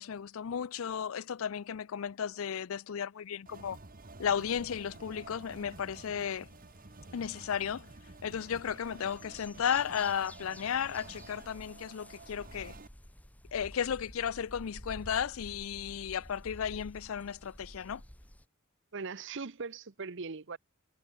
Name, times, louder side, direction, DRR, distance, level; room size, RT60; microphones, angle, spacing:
voice 1, 0.0-3.8 4.2-6.5 7.1-7.9 8.2-12.7 13.5-18.0, left 8 dB, 75° left, 0.5 m, -34 dB
sound 1, 3.5-12.9, right 3 dB, 45° right, 1.6 m, -51 dB
sound 2, 4.4-18.4, equal, 5° left, 1.5 m, -53 dB
voice 2, 18.9-20.6, right 4 dB, 60° right, 0.9 m, -40 dB
head